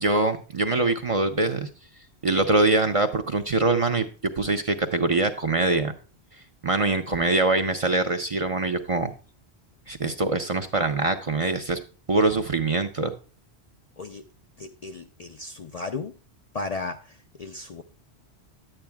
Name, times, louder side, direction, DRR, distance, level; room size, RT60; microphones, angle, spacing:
voice 1, 0.0-1.7 2.2-4.1 4.4-5.9 6.6-9.1 9.9-11.8 12.1-13.1, right 2 dB, 40° right, 0.6 m, -23 dB
voice 2, 14.6-16.2 16.5-17.8, left 3 dB, 50° left, 0.5 m, -35 dB
10.5 x 8.8 x 2.3 m
omnidirectional pair, 1.1 m